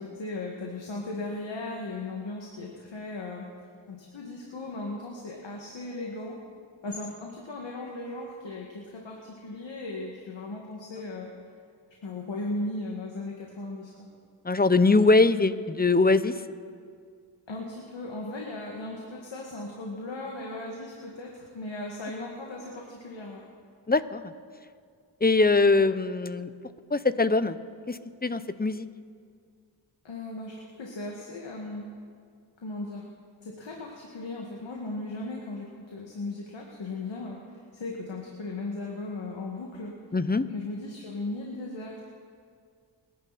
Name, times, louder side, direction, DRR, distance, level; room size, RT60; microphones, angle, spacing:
voice 1, 0.0-3.5 3.9-6.4 6.8-11.3 12.0-13.9 17.5-23.4 30.0-31.9 32.6-33.0 33.4-39.9 40.5-42.1, left 2 dB, 75° left, -1 dB, 2.2 m, -37 dB
voice 2, 14.4-16.3 23.9-24.2 25.2-26.5 26.9-27.6 27.9-28.9 40.1-40.4, left 3 dB, 20° left, 13 dB, 0.9 m, -22 dB
29.0 x 11.0 x 4.3 m, 2.1 s
cardioid pair, 45°, 45 cm